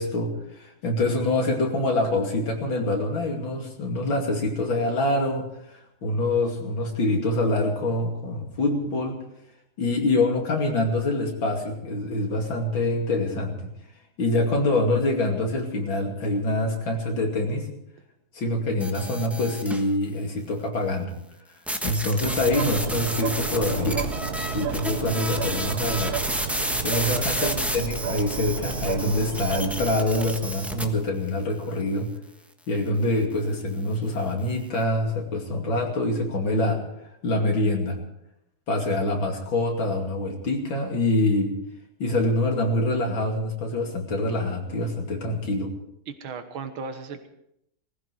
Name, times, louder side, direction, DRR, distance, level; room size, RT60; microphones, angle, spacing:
voice 1, 0.0-9.2 9.8-13.7 14.2-17.7 18.3-21.1 21.8-24.0 24.5-26.2 26.8-32.1 32.7-36.8 37.2-38.0 38.7-41.5 42.0-45.7, left 2 dB, 70° left, 2 dB, 3.3 m, -25 dB
sound 1, 18.8-19.9 21.7-30.8, equal, ahead, 1.0 m, -31 dB
sound 2, 22.2-30.7, right 8 dB, 55° right, 1.3 m, -32 dB
voice 2, 46.1-47.3, right 5 dB, 90° right, 8 dB, 2.1 m, -35 dB
20.0 x 15.0 x 4.8 m, 0.78 s
omnidirectional pair, 2.2 m